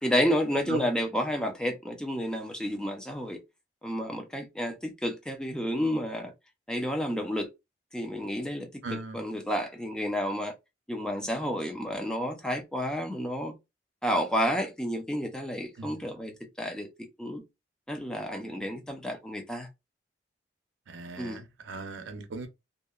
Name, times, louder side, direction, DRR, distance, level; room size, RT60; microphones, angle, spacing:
voice 1, 0.0-3.4 3.8-6.3 6.7-7.5 7.9-10.5 10.9-13.5 14.0-16.9 17.2-17.4 17.9-19.7 21.2-21.4, equal, 5° left, 0.5 m, -30 dB
voice 2, 8.8-9.2 15.8-16.1 20.9-22.5, right 3 dB, 85° right, 0.6 m, -38 dB
2.8 x 2.2 x 2.3 m
head